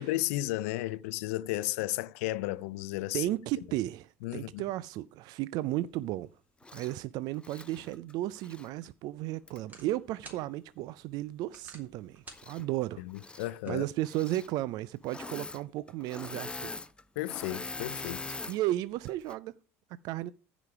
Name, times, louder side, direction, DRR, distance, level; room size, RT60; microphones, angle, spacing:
voice 1, 0.0-3.3 4.2-4.6 13.0-13.9 17.2-18.4, left 17 dB, 80° left, 0.5 m, -33 dB
voice 2, 3.1-6.3 6.7-13.0 13.3-16.9 18.5-19.5 20.0-20.3, right 15 dB, 65° right, 0.4 m, -34 dB
Engine / Mechanisms, 6.6-6.9 7.4-8.7 9.5-9.6 12.3-12.8 13.1-13.5 14.1-14.5 15.0-15.6 15.9-18.6 19.1-19.4, left 3 dB, 15° left, 0.5 m, -42 dB
sound 1, 8.4-14.5, right 2 dB, 25° right, 3.7 m, -57 dB
15.0 x 5.1 x 4.7 m
hypercardioid pair, 80°, 8 cm